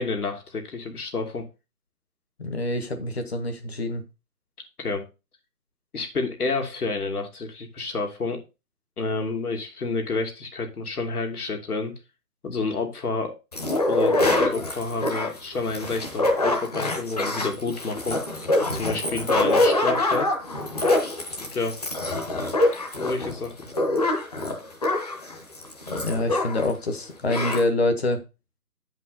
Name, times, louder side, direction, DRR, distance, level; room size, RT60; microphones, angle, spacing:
voice 1, 0.0-1.4 4.8-5.0 5.9-8.4 9.0-11.9 12.4-13.4 13.9-18.2 18.7-20.3 21.4-21.8 22.9-23.7, left 3 dB, 70° left, 4 dB, 2.7 m, -29 dB
voice 2, 2.4-4.0 26.0-28.2, left 2 dB, 40° left, 7 dB, 1.5 m, -26 dB
sound 1, 13.5-26.7 27.0-27.1 27.3-27.6, left 2 dB, 25° left, 1.1 m, -25 dB
9.8 x 5.3 x 4.1 m, 0.28 s
hypercardioid pair, 175°, 47 cm